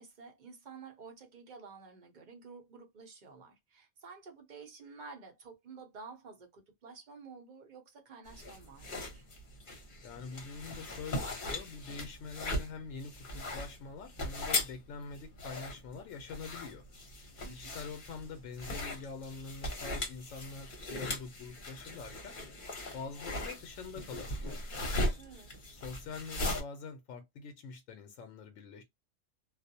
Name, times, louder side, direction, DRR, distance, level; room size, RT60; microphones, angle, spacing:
voice 1, 0.0-9.3 17.4-17.8 25.2-25.5, right 4 dB, 45° right, 0.7 m, -51 dB
sound 1, 8.3-26.6, left 1 dB, 45° left, 1.0 m, -39 dB
voice 2, 10.0-16.8 17.5-22.4 22.9-24.7 25.0-25.2 25.7-28.8, left 4 dB, 85° left, 1.0 m, -45 dB
2.4 x 2.0 x 2.6 m
omnidirectional pair, 1.3 m